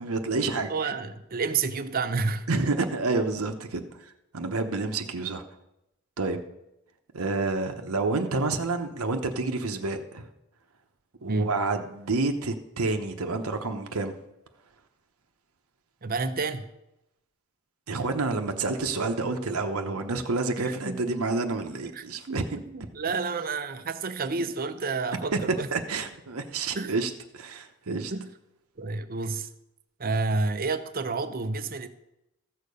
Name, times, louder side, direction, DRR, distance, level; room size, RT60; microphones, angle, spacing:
voice 1, 0.0-0.9 2.5-3.8 4.3-5.4 6.2-6.4 7.1-10.3 11.2-14.1 17.9-22.4 25.3-28.1, right 3 dB, 85° right, 5 dB, 1.0 m, -29 dB
voice 2, 0.7-2.5 11.3-11.5 16.0-16.6 20.6-21.0 21.9-22.4 22.7-25.7 26.7-26.9 28.1-28.3 28.8-29.5 30.0-31.9, right 3 dB, 45° right, 10 dB, 0.7 m, -29 dB
14.5 x 6.7 x 5.4 m, 0.88 s
head